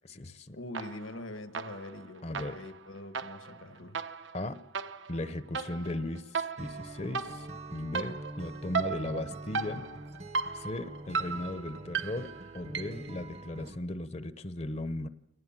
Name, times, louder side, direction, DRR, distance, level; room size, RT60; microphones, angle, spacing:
voice 1, 0.0-0.6 2.2-2.6 4.3-4.6 5.1-9.8 10.5-12.3 12.5-15.1, left 1 dB, 35° left, 14 dB, 0.8 m, -37 dB
voice 2, 0.5-4.0, left 2 dB, 80° left, 10 dB, 1.6 m, -43 dB
sound 1, 0.7-1.2 1.5-13.2, right 5 dB, 65° right, 1.0 m, -37 dB
Acoustic guitar, 6.6-13.8, right 2 dB, 30° right, 0.9 m, -45 dB
25.0 x 19.0 x 7.3 m, 0.79 s
head